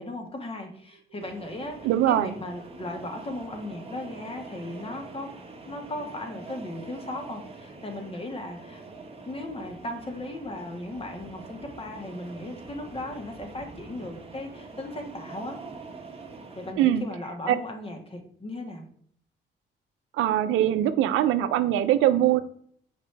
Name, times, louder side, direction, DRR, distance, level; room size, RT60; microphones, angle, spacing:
voice 1, 0.0-5.4 5.6-8.8 9.2-15.6 16.5-18.9, left 1 dB, 30° left, 3 dB, 1.5 m, -37 dB
sound 1, 1.2-16.7, right 3 dB, 30° right, 1.3 m, -44 dB
voice 2, 1.8-2.3 16.8-17.0 17.5-17.6 20.1-22.4, right 12 dB, 90° right, 11 dB, 0.5 m, -22 dB
6.5 x 5.0 x 3.3 m, 0.62 s
cardioid pair, 90°, 20 cm